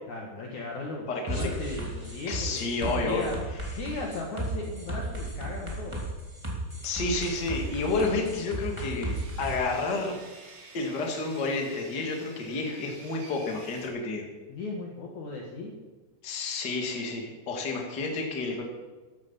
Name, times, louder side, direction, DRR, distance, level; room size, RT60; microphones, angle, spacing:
voice 1, 0.1-3.4 3.7-6.0 14.5-15.7, left 3 dB, 55° left, -1 dB, 2.6 m, -36 dB
sound 1, 1.3-9.5, right 1 dB, 10° right, 2.4 m, -35 dB
voice 2, 2.3-3.3 6.8-10.1 10.7-14.2 16.2-18.6, left 3 dB, 30° left, 0 dB, 2.4 m, -30 dB
Sawing, 7.1-13.9, right 3 dB, 60° right, 4.2 m, -51 dB
15.0 x 12.5 x 5.7 m, 1.3 s
omnidirectional pair, 4.8 m